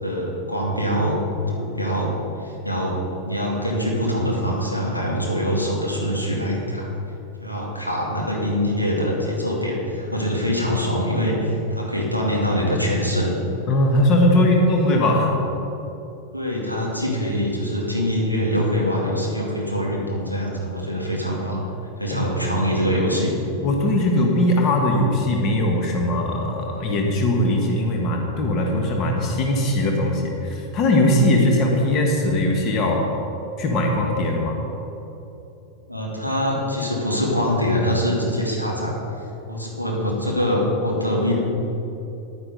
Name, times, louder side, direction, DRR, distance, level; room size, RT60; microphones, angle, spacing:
voice 1, 0.0-1.2 1.5-2.1 2.4-6.9 7.4-13.4 16.3-21.6 22.0-23.4 35.9-39.0 39.5-41.3, equal, 90° left, -3 dB, 2.2 m, -24 dB
voice 2, 13.7-15.3 22.1-22.3 23.6-33.1 33.6-34.6, left 1 dB, 35° left, 1 dB, 1.7 m, -20 dB
10.5 x 9.6 x 5.2 m, 3.0 s
figure-of-eight pair, 90°, 0 cm